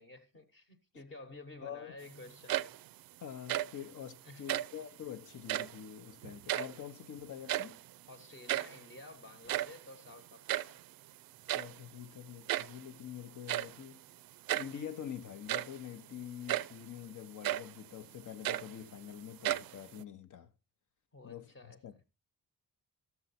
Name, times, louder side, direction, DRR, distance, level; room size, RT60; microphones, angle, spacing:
voice 1, 0.0-2.8 4.2-4.6 8.1-10.8 21.1-21.8, left 2 dB, 35° left, 1.1 m, -52 dB
voice 2, 1.6-1.9 3.2-7.8 11.5-14.0 14.5-20.5 21.2-22.0, left 9 dB, 55° left, 0.7 m, -46 dB
sound 1, 2.3-3.0 3.3-3.9 4.4-4.8 5.4-5.9 6.2-7.0 7.3-7.9 8.2-8.3 8.5-8.8 9.3-10.8 11.5-11.8 12.5-12.9 13.5-13.8 14.5-14.8 15.3-15.8 16.5-16.8 17.4-17.8 18.2-19.1 19.4-20.0, right 13 dB, 70° right, 0.5 m, -35 dB
13.0 x 6.9 x 4.1 m
wide cardioid pair, 165°, 36 cm